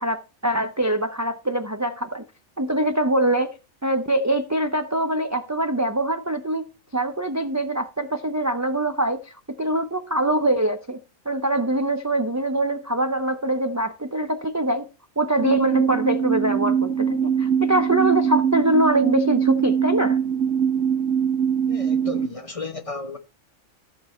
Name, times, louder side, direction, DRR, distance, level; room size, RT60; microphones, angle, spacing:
voice 1, 0.0-2.2 2.6-3.5 3.8-6.6 6.9-11.0 11.3-14.9 15.2-20.2, right 1 dB, 25° right, 0.3 m, -23 dB
sound 1, 15.4-22.3, right 7 dB, 70° right, 1.6 m, -22 dB
voice 2, 21.7-23.2, left 2 dB, 30° left, 0.9 m, -33 dB
14.0 x 5.4 x 4.3 m
omnidirectional pair, 1.4 m